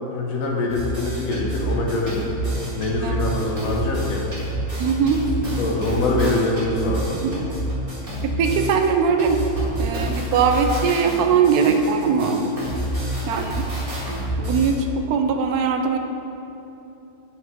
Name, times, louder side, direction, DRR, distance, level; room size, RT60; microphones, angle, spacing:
voice 1, 0.1-2.2 2.7-4.2 5.6-7.2, left 2 dB, 60° left, -1 dB, 1.4 m, -24 dB
sound 1, 0.7-8.9 9.2-14.7, right 1 dB, 35° right, 2.1 m, -28 dB
voice 2, 4.8-5.2 7.2-7.5 8.2-9.4 9.8-12.4 13.3-13.7 14.1-16.0, right 6 dB, 75° right, 5 dB, 1.1 m, -21 dB
9.4 x 4.6 x 4.5 m, 2.9 s
omnidirectional pair, 1.7 m